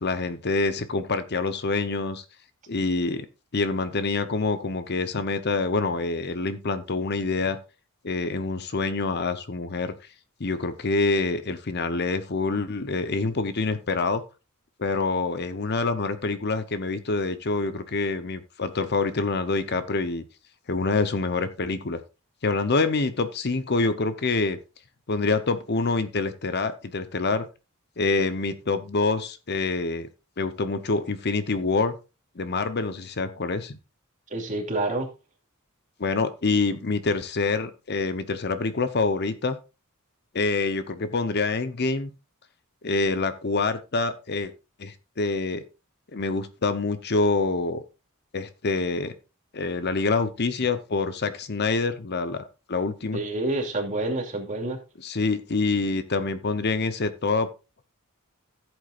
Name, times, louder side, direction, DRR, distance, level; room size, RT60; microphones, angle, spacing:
voice 1, 0.0-2.2 2.7-3.3 3.5-7.6 8.0-9.9 10.4-14.2 14.8-20.2 20.7-22.0 22.4-24.6 25.1-27.5 28.0-30.1 30.4-32.0 32.4-33.8 36.0-39.6 40.3-42.1 42.8-44.5 44.8-45.6 46.1-47.8 48.3-49.2 49.5-53.2 55.0-57.5, left 3 dB, 50° left, 12 dB, 0.8 m, -26 dB
voice 2, 34.3-35.1 53.1-54.8, right 2 dB, 35° right, 1 dB, 2.7 m, -28 dB
14.5 x 8.1 x 2.5 m, 0.29 s
head